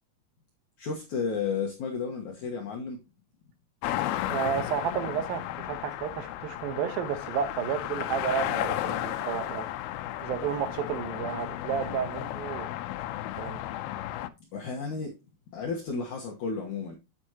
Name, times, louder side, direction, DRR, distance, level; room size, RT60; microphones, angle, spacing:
voice 1, 0.8-3.0 9.1-9.3 11.7-12.0 13.2-13.3 14.5-15.1 15.5-17.0, left 5 dB, 65° left, 2.3 m, -33 dB
sound 1, 3.8-14.3, left 13 dB, 80° left, 2.5 m, -34 dB
voice 2, 3.9-9.7 10.2-12.7 13.4-13.6, right 8 dB, 75° right, 2.8 m, -32 dB
9.6 x 7.9 x 2.9 m
omnidirectional pair, 4.4 m